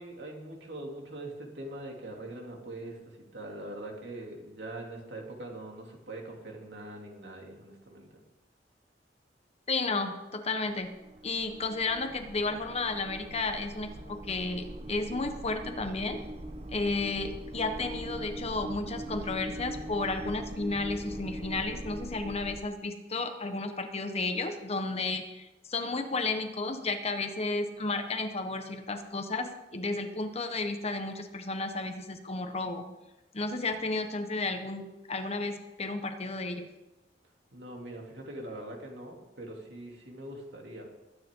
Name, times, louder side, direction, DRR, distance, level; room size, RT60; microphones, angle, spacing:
voice 1, 0.0-3.0 3.3-8.2 37.5-40.9, right 1 dB, 75° right, 0 dB, 3.1 m, -42 dB
voice 2, 9.7-10.9 11.2-16.2 16.7-32.9 33.3-36.7, left 3 dB, 35° left, 6 dB, 1.3 m, -33 dB
sound 1, 10.8-22.6, right 1 dB, 35° right, 1.0 m, -41 dB
21.0 x 9.6 x 3.9 m, 1.0 s
head